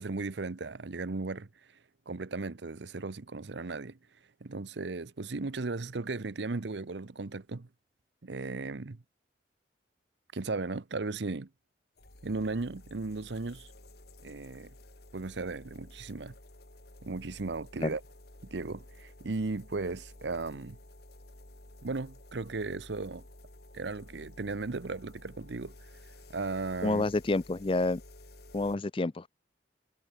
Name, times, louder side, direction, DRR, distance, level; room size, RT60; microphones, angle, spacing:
voice 1, 0.0-1.5 2.1-4.0 4.4-7.7 8.2-9.0 10.3-11.5 12.2-13.7 14.2-14.7 15.1-16.3 17.0-18.0 18.4-20.8 21.8-23.2 23.7-25.7 26.0-27.0, right 3 dB, 70° right, 0.8 m, -36 dB
sound 1, 12.0-28.8, left 1 dB, 60° left, 3.3 m, -53 dB
voice 2, 26.8-28.0 28.5-29.3, left 2 dB, 30° left, 0.4 m, -28 dB
head